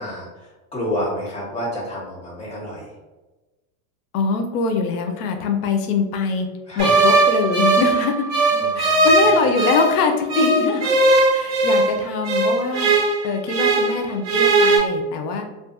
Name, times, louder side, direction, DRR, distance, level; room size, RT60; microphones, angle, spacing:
voice 1, 0.0-2.9 6.7-7.1 8.5-9.5, equal, 15° left, -7 dB, 0.9 m, -30 dB
voice 2, 4.1-6.5 6.8-8.2 8.7-10.9 11.3-12.9 13.2-15.5, left 4 dB, 90° left, 5 dB, 0.6 m, -23 dB
sound 1, 6.8-10.0 10.3-14.0 14.2-14.8, right 2 dB, 35° right, 0.9 m, -18 dB
2.5 x 2.3 x 2.4 m, 1.2 s
supercardioid pair, 145°, 45 cm